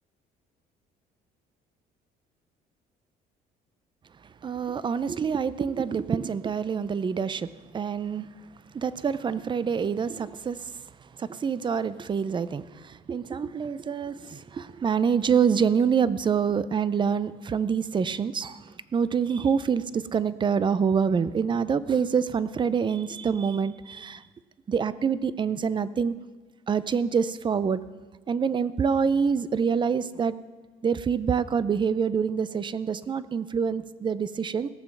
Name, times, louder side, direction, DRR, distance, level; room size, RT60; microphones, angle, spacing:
voice 1, 4.4-8.3 8.7-10.8 11.2-24.2 24.7-26.1 26.7-27.8 28.3-30.4 30.8-34.7, right 6 dB, 30° right, 16 dB, 0.5 m, -26 dB
18.0 x 6.8 x 5.9 m, 1.4 s
cardioid pair, 110°, 17 cm